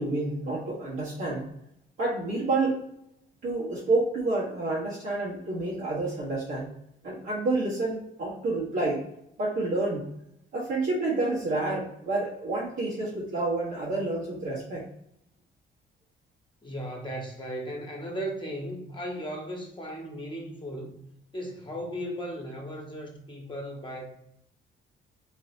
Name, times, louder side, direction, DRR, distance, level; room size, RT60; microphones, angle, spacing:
voice 1, 0.0-1.5 2.0-2.8 3.4-6.7 7.0-9.0 9.4-10.1 10.5-14.8, right 2 dB, 80° right, -9 dB, 1.4 m, -29 dB
voice 2, 16.6-21.0 21.3-24.1, equal, 25° left, 0 dB, 1.1 m, -36 dB
4.0 x 2.7 x 2.8 m, 0.75 s
cardioid pair, 90°, 20 cm